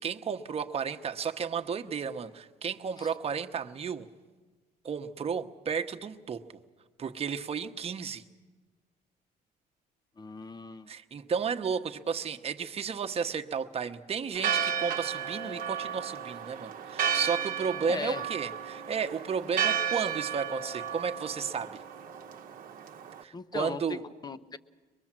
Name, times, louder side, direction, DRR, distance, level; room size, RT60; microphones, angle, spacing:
voice 1, 0.0-4.1 4.8-6.5 7.0-8.2 10.9-21.8 23.2-24.0, right 6 dB, 35° right, 1.1 m, -33 dB
voice 2, 10.2-10.9 17.9-18.2 23.3-24.6, left 4 dB, 25° left, 0.8 m, -38 dB
Church bell, 14.3-23.2, right 8 dB, 55° right, 1.0 m, -33 dB
23.0 x 22.0 x 7.5 m
cardioid pair, 110°, 17 cm